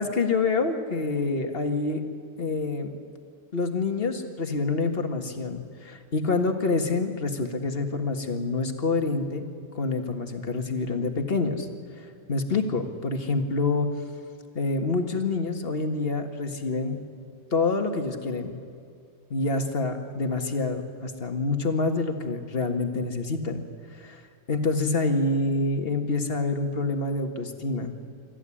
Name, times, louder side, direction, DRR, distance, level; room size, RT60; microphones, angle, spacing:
voice 1, 0.0-2.0 2.4-2.9 3.5-9.5 9.7-11.7 12.0-13.9 14.6-17.1 17.5-18.6 19.3-23.6 23.9-24.2 24.5-28.0, left 3 dB, 40° left, 6 dB, 1.9 m, -27 dB
26.0 x 14.5 x 10.0 m, 2.3 s
omnidirectional pair, 1.6 m